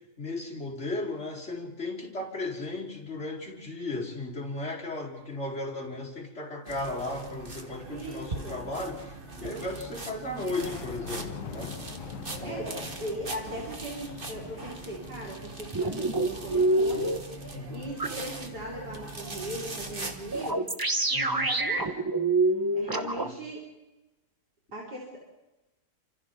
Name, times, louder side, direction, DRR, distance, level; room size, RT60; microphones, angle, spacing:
voice 1, 0.0-11.8 12.4-12.9 17.5-17.8 21.1-21.5 22.9-23.3, left 2 dB, 40° left, -2 dB, 4.5 m, -36 dB
sound 1, 6.7-20.5, right 2 dB, 30° right, 2.1 m, -41 dB
voice 2, 7.9-8.7 12.2-20.7 21.1-22.1 22.7-23.6 24.7-25.2, right 1 dB, 65° right, -5 dB, 5.4 m, -39 dB
sound 2, 10.5-15.5, left 9 dB, 85° left, 1.7 m, -44 dB
sound 3, 15.7-17.2 18.0-18.1 20.3-23.3, right 2 dB, 15° right, 1.0 m, -26 dB
30.0 x 27.0 x 3.8 m, 1.0 s
omnidirectional pair, 1.9 m